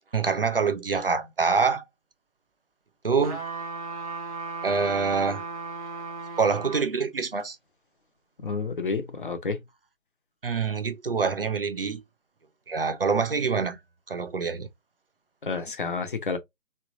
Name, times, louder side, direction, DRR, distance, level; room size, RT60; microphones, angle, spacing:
voice 1, 0.1-1.8 3.0-3.4 4.6-5.4 6.4-7.6 10.4-12.0 12.7-13.8 14.1-14.7, right 5 dB, 45° right, 0.5 m, -25 dB
sound 1, 3.2-6.9 7.4-7.5, right 4 dB, 25° right, 1.2 m, -36 dB
voice 2, 8.4-9.6 15.4-16.4, left 4 dB, 40° left, 0.7 m, -30 dB
3.7 x 3.4 x 2.4 m
figure-of-eight pair, 155°, 41 cm